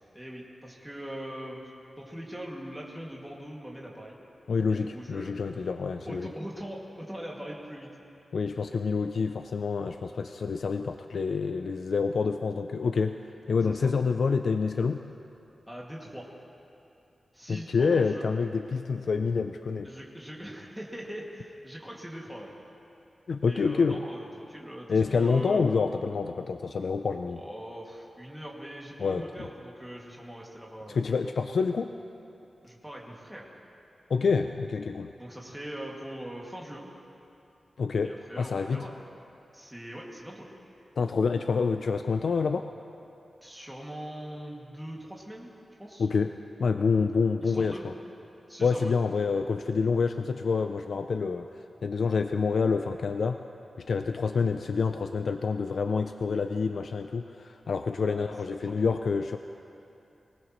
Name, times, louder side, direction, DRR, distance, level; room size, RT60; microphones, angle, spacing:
voice 1, 0.1-1.7 2.0-4.2 4.7-5.7 6.1-7.9 13.7-13.9 15.7-16.3 17.3-18.2 19.8-22.5 23.5-25.6 27.3-31.0 32.6-33.6 35.2-36.8 38.0-38.9 39.5-40.5 43.4-45.5 45.8-46.1 47.4-47.8 48.5-48.9 57.9-58.7, equal, 5° right, -4 dB, 2.2 m, -41 dB
voice 2, 4.5-6.3 8.3-13.2 13.5-15.0 17.5-19.9 23.3-24.0 24.9-27.4 29.0-29.5 30.9-31.9 34.1-35.1 37.8-38.9 41.0-42.7 46.0-46.3 46.6-47.8 48.6-53.4 53.8-59.4, left 5 dB, 65° left, 7 dB, 0.4 m, -27 dB
24.0 x 19.5 x 3.1 m, 2.8 s
wide cardioid pair, 165°, 0 cm